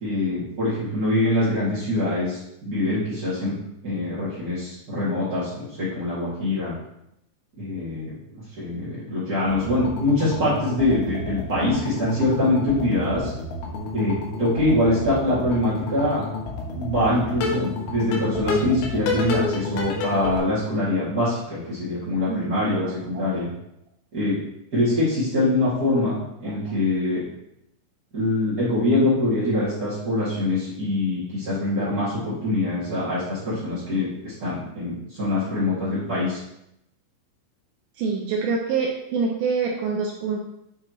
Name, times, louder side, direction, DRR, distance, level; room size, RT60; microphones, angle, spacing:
voice 1, 0.0-2.4 2.6-3.5 3.8-6.7 7.6-8.1 8.6-13.3 13.9-16.2 16.7-23.5 24.1-24.4 24.7-27.2 28.1-36.4, left 1 dB, 35° right, -12 dB, 1.5 m, -24 dB
sound 1, 9.4-20.4, left 3 dB, 75° left, 3.3 m, -30 dB
voice 2, 22.3-22.7 23.1-23.3 26.5-26.6 38.0-40.4, right 5 dB, 80° right, 0 dB, 2.7 m, -26 dB
9.2 x 4.8 x 3.1 m, 0.81 s
omnidirectional pair, 5.5 m